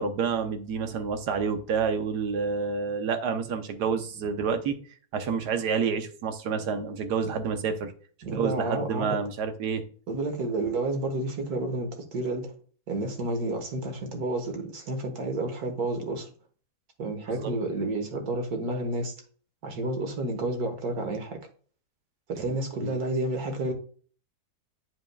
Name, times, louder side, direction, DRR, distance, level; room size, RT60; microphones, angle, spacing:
voice 1, 0.0-4.8 5.1-7.9 8.2-9.8 17.3-17.5 22.5-22.9, right 5 dB, 90° right, 1.5 m, -29 dB
voice 2, 8.2-9.2 10.1-12.5 12.9-16.3 17.0-19.1 19.6-21.4 22.3-23.7, right 2 dB, 70° right, 1.9 m, -30 dB
8.6 x 5.3 x 2.3 m
omnidirectional pair, 1.7 m